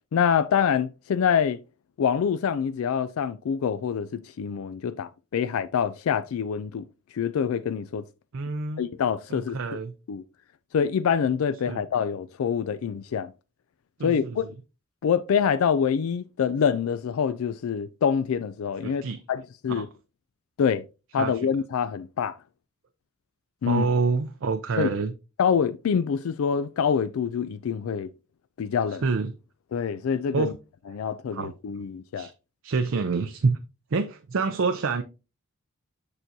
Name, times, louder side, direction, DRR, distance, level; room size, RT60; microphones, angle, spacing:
voice 1, 0.1-1.6 2.0-6.8 7.1-8.0 8.8-9.8 10.1-10.2 10.7-13.3 14.0-14.5 15.0-19.0 19.3-19.9 20.6-20.8 21.1-22.3 23.6-23.9 24.8-24.9 25.4-28.1 28.6-29.0 29.7-30.5 30.9-32.3, left 7 dB, 75° left, 0.3 m, -25 dB
voice 2, 8.3-8.8 9.3-9.9 11.7-11.8 14.0-14.4 18.8-19.2 19.7-19.9 21.2-21.4 23.6-25.1 29.0-29.3 30.3-30.5 30.9-31.0 31.3-31.5 32.2-32.3 32.6-33.6 33.9-35.0, right 4 dB, 65° right, 0.5 m, -27 dB
6.7 x 6.0 x 2.7 m
head